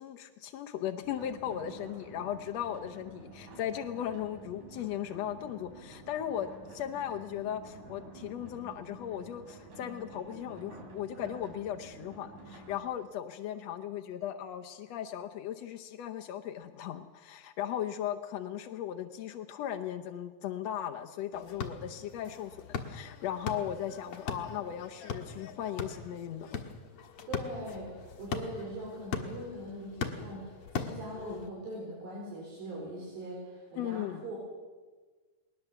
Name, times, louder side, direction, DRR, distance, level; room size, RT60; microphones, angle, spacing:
voice 1, 0.0-26.6 33.8-34.2, left 10 dB, 90° left, 6 dB, 1.4 m, -37 dB
sound 1, 1.0-12.8, right 2 dB, 55° right, 5.7 m, -50 dB
sound 2, 21.3-31.5, left 5 dB, 55° left, 1.9 m, -40 dB
voice 2, 27.3-34.4, right 1 dB, 75° right, -4 dB, 6.5 m, -41 dB
21.0 x 20.0 x 6.9 m, 1.4 s
omnidirectional pair, 4.2 m